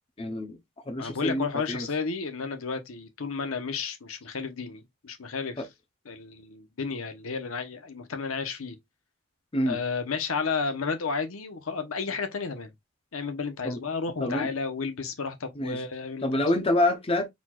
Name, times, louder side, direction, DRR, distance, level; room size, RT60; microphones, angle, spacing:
voice 1, 0.2-0.6 0.9-1.9 5.6-5.7 9.5-9.8 13.6-13.8 14.2-14.5 15.5-15.9 16.2-17.3, left 1 dB, 25° left, 0.6 m, -27 dB
voice 2, 1.0-5.7 6.0-8.8 9.7-12.7 13.1-16.4, left 5 dB, 75° left, 0.9 m, -32 dB
4.3 x 4.2 x 2.3 m
head